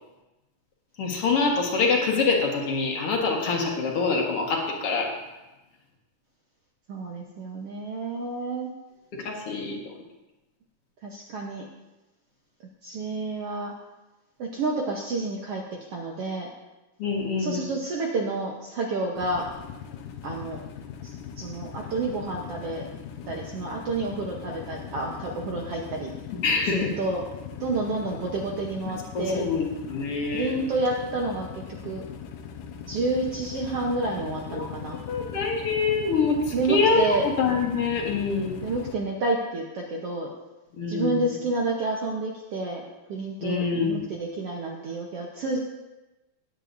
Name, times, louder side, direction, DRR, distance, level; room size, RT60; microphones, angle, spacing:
voice 1, 1.0-5.1 9.2-9.8 17.0-17.6 26.4-27.0 29.1-30.5 34.5-37.0 37.4-38.5 40.8-41.3 43.4-44.1, left 4 dB, 50° left, 0 dB, 2.1 m, -25 dB
voice 2, 6.9-8.7 11.0-11.6 12.8-13.7 14.4-15.6 15.9-16.5 17.4-19.5 20.2-20.6 21.0-22.9 23.3-26.1 26.7-27.2 27.6-29.5 30.3-31.5 31.8-32.0 32.9-35.0 36.5-37.3 38.6-40.3 40.9-42.8 43.1-45.6, right 2 dB, 75° right, -1 dB, 1.3 m, -29 dB
sound 1, 19.2-39.0, left 7 dB, 75° left, 2.3 m, -40 dB
17.5 x 9.8 x 2.6 m, 1.1 s
omnidirectional pair, 4.1 m